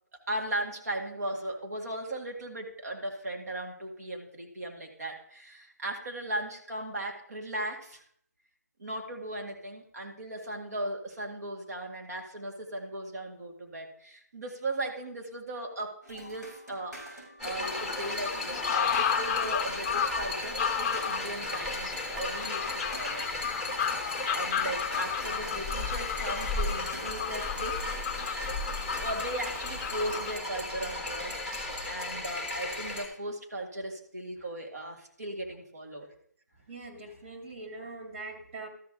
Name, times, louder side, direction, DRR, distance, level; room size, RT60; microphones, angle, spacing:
voice 1, 0.3-8.0 8.8-23.2 23.9-27.9 28.3-28.5 29.0-36.1, right 1 dB, 65° right, 1 dB, 2.2 m, -37 dB
sound 1, 16.0-30.0, right 1 dB, 80° right, 4.9 m, -47 dB
sound 2, 17.4-33.1, left 2 dB, 10° right, 1.3 m, -35 dB
sound 3, 17.6-30.4, left 8 dB, 25° left, 0.6 m, -33 dB
voice 2, 28.2-29.1 31.8-31.9 36.7-38.7, right 2 dB, 45° right, 1 dB, 2.6 m, -43 dB
13.0 x 6.3 x 3.7 m, 0.63 s
figure-of-eight pair, 150°, 9 cm